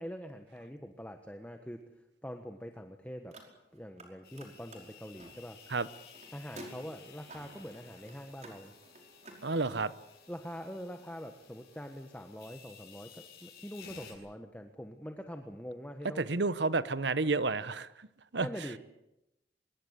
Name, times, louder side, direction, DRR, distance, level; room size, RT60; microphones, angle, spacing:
voice 1, 0.0-1.8 2.2-3.4 3.7-5.6 6.3-8.7 10.3-16.2 18.4-18.8, equal, 10° left, 1.4 m, -44 dB
Car, 3.2-4.1 4.3-9.4, right 1 dB, 40° right, 5.2 m, -52 dB
sound 1, 4.2-14.1, left 7 dB, 55° left, 7.7 m, -55 dB
voice 2, 9.4-9.9 16.2-18.1 18.3-18.5, right 3 dB, 75° right, 1.1 m, -30 dB
25.5 x 21.5 x 8.3 m
head